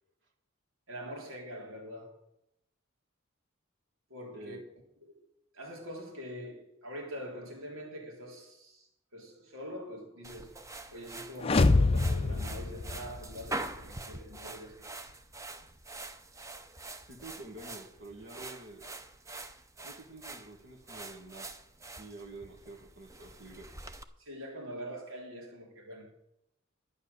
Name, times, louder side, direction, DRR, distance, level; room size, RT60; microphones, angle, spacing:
voice 1, 0.9-2.2 4.1-4.6 5.0-10.6 10.9-14.9 24.2-26.2, equal, 90° right, 3.4 m, -44 dB
sound 1, 10.2-24.0, right 2 dB, 15° right, 0.7 m, -45 dB
sound 2, 11.4-13.5, left 3 dB, 30° left, 0.4 m, -26 dB
voice 2, 17.1-18.9 19.8-21.5 22.0-23.7, right 2 dB, 60° right, 1.9 m, -48 dB
11.5 x 9.7 x 6.8 m
head